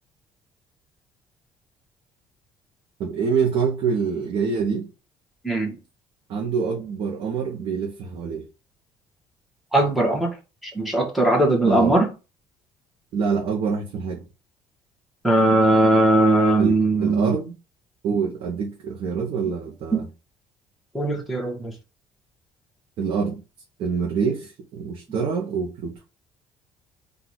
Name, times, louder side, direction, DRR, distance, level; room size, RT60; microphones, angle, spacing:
voice 1, 3.0-4.9 6.3-8.5 11.6-12.0 13.1-14.2 16.6-17.6 18.0-20.1 23.0-23.4 23.8-25.9, right 6 dB, 65° right, 1.0 m, -26 dB
voice 2, 5.4-5.7 9.7-10.3 10.6-12.1 15.2-17.3 19.9-20.0 20.9-21.7, right 2 dB, ahead, 1.6 m, -19 dB
4.1 x 2.7 x 4.6 m
cardioid pair, 105°, 10 cm